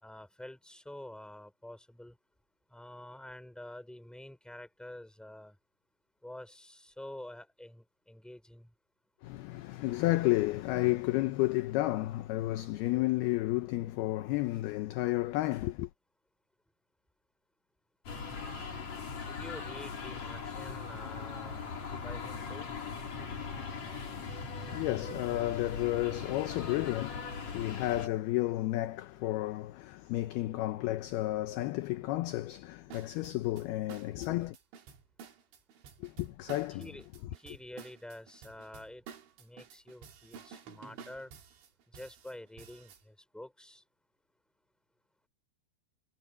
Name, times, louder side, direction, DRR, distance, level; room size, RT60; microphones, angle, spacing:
voice 1, 0.0-2.1 2.7-5.5 6.2-8.7 19.2-22.7 36.8-37.1 37.3-39.0 39.4-41.3 41.9-43.8, left 1 dB, ahead, 5.1 m, -48 dB
voice 2, 9.2-15.9 24.1-34.6 36.0-36.9, left 17 dB, 80° left, 2.4 m, -32 dB
sound 1, 18.1-28.1, left 5 dB, 40° left, 4.4 m, -40 dB
sound 2, 32.9-43.0, right 7 dB, 85° right, 5.2 m, -52 dB
omnidirectional pair, 5.2 m